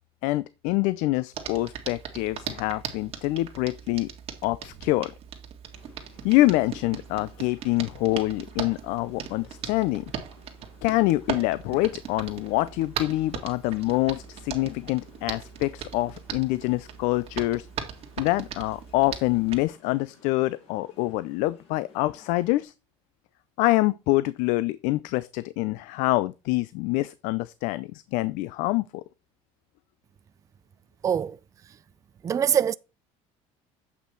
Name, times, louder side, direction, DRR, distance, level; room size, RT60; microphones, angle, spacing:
voice 1, 0.2-4.1 4.4-5.1 6.2-10.1 10.8-17.7 18.2-22.7 23.6-29.0, left 18 dB, 75° left, 0.5 m, -26 dB
Hands, 1.3-19.6, right 8 dB, 50° right, 1.9 m, -39 dB
sound 1, 5.7-22.6, left 5 dB, 50° left, 5.6 m, -56 dB
voice 2, 31.0-31.4 32.2-32.7, right 8 dB, 25° right, 0.4 m, -23 dB
8.2 x 5.7 x 4.4 m
cardioid pair, 120°, 13 cm